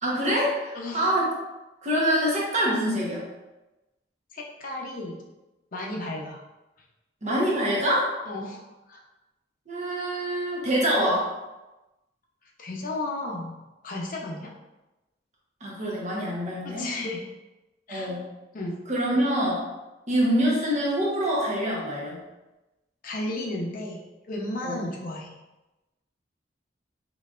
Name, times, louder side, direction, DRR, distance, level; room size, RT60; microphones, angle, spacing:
voice 1, 0.0-1.3 1.8-3.3 7.2-8.2 9.7-11.3 15.6-16.9 17.9-18.3 18.9-19.6 20.1-22.2 24.6-24.8, equal, 40° right, -4 dB, 1.0 m, -25 dB
voice 2, 4.3-5.2 5.7-6.4 8.3-9.0 12.6-13.6 13.8-14.5 16.6-17.2 17.9-18.2 18.5-18.8 23.0-25.3, left 2 dB, 50° left, -1 dB, 0.7 m, -33 dB
3.8 x 3.2 x 2.4 m, 1.0 s
head